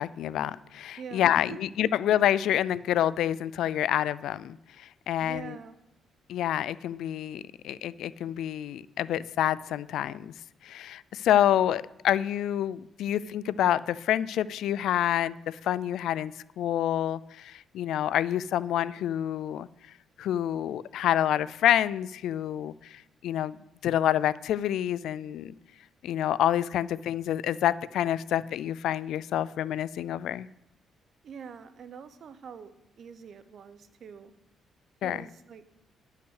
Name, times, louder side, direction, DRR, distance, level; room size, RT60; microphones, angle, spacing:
voice 1, 0.0-5.6 6.3-10.3 10.6-19.7 20.2-23.6 23.8-25.5 26.0-30.5 35.0-35.2, left 11 dB, 80° left, 19 dB, 0.3 m, -28 dB
voice 2, 1.0-1.6 5.2-5.8 31.2-34.3 35.0-35.6, right 6 dB, 55° right, 12 dB, 0.8 m, -44 dB
11.0 x 5.7 x 6.3 m, 0.87 s
cardioid pair, 90°, 0 cm